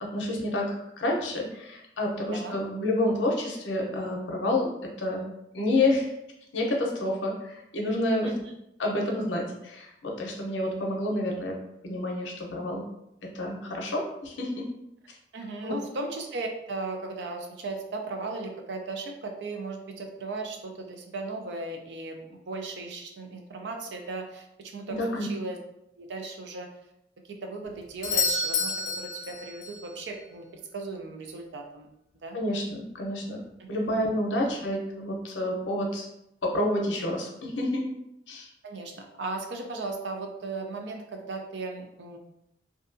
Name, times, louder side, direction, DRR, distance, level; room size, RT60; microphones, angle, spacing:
voice 1, 0.0-4.7 5.0-5.2 5.5-6.1 6.5-8.3 8.8-11.6 11.8-12.8 13.3-14.7 15.6-15.7 24.9-25.3 32.3-33.4 33.7-36.1 36.4-37.8 38.3-38.5, left 1 dB, 85° left, 0 dB, 0.6 m, -29 dB
voice 2, 2.3-2.6 8.2-8.4 15.3-25.6 26.0-26.7 27.2-31.9 32.2-32.4 33.6-33.7 34.4-34.5 38.6-42.2, right 3 dB, 75° right, 3 dB, 0.4 m, -37 dB
Doorbell, 28.0-29.9 33.9-34.0, left 3 dB, 40° left, 0.4 m, -29 dB
2.6 x 2.2 x 2.5 m, 0.81 s
head